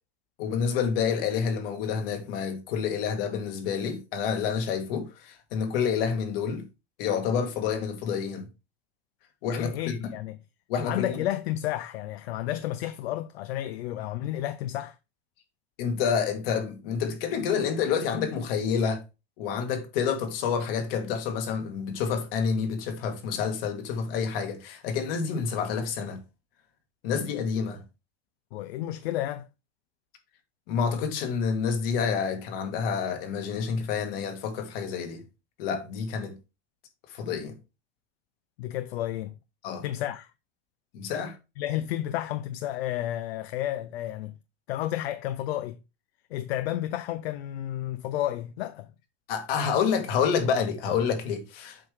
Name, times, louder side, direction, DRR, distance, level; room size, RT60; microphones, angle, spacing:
voice 1, 0.4-6.7 7.0-8.5 9.4-10.1 10.7-11.2 15.8-19.0 19.4-26.2 27.0-27.8 30.7-35.2 35.6-36.3 37.1-37.6 39.6-39.8 40.9-41.4 49.3-51.8, left 6 dB, 65° left, 1.8 m, -28 dB
voice 2, 9.5-10.4 10.8-14.9 28.5-29.5 38.6-39.3 39.8-40.3 41.6-44.4 44.7-45.8 46.3-48.9, left 13 dB, 80° left, 0.6 m, -31 dB
7.7 x 4.7 x 3.3 m
supercardioid pair, 130°, 31 cm